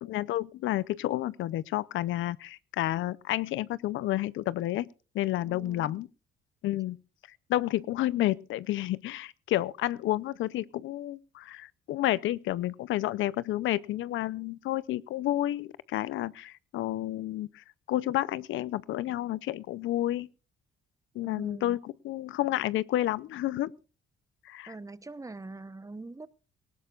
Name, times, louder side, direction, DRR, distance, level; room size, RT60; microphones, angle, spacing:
voice 1, 0.0-4.9 5.1-6.1 6.6-7.0 7.5-20.3 21.1-21.8 22.0-23.7 24.5-24.7, left 14 dB, 80° left, 0.6 m, -30 dB
voice 2, 5.5-6.0 21.2-21.8 24.7-26.3, right 3 dB, 15° right, 0.9 m, -43 dB
18.5 x 17.5 x 2.4 m
cardioid pair, 90°, 20 cm